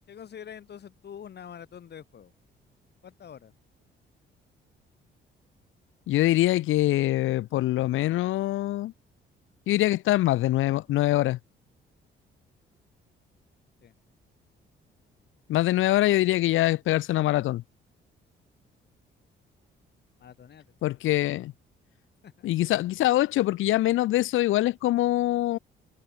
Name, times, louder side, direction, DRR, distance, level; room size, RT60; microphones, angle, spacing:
voice 1, 0.1-2.3 3.0-3.5 13.8-14.0 20.2-20.7 22.2-22.5, left 8 dB, 55° left, 5.5 m, -45 dB
voice 2, 6.1-8.9 9.7-11.4 15.5-17.6 20.8-21.5 22.4-25.6, left 15 dB, 85° left, 1.4 m, -24 dB
cardioid pair, 90°, 20 cm